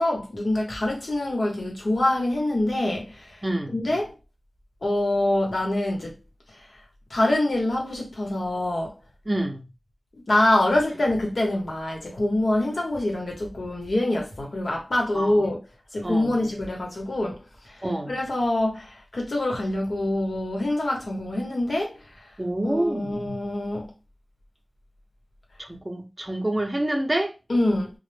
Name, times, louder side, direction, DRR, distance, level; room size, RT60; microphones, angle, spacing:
voice 1, 0.0-3.4 3.7-4.1 4.8-6.2 7.1-8.9 10.3-15.6 15.9-21.9 22.6-23.9 27.5-27.9, left 1 dB, 80° left, 0.9 m, -25 dB
voice 2, 3.4-3.8 9.3-9.7 15.1-15.5 16.0-16.4 17.8-18.2 22.4-23.2 25.6-27.3, right 1 dB, 25° right, 0.6 m, -27 dB
2.1 x 2.1 x 3.2 m
wide cardioid pair, 65°, 0 cm